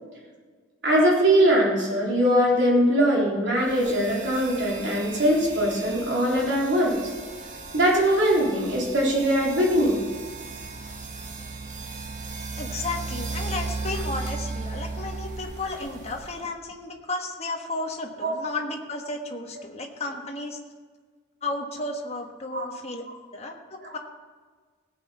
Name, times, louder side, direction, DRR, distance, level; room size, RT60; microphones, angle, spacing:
voice 1, 0.8-7.0 7.7-10.0 18.2-18.3 22.5-22.7 23.8-23.9, equal, 55° right, -3 dB, 3.7 m, -21 dB
sound 1, 3.6-16.5, right 3 dB, 40° right, 1.8 m, -36 dB
voice 2, 12.6-20.6 21.4-23.0 23.3-24.0, left 2 dB, 30° left, 2 dB, 1.4 m, -33 dB
17.5 x 7.8 x 5.7 m, 1.4 s
head